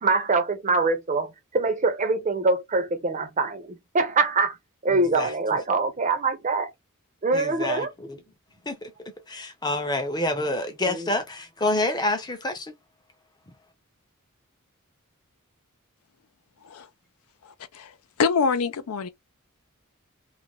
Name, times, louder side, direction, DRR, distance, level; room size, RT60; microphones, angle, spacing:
voice 1, 0.0-4.6 4.8-6.7 7.2-7.9 10.9-11.1, right 3 dB, 35° right, 0.6 m, -24 dB
voice 2, 4.9-5.3 7.3-8.2 8.7-8.9 9.3-12.7, left 2 dB, 20° left, 0.5 m, -28 dB
voice 3, 17.4-17.9 18.2-19.1, left 5 dB, 80° left, 0.4 m, -25 dB
2.4 x 2.2 x 2.9 m
head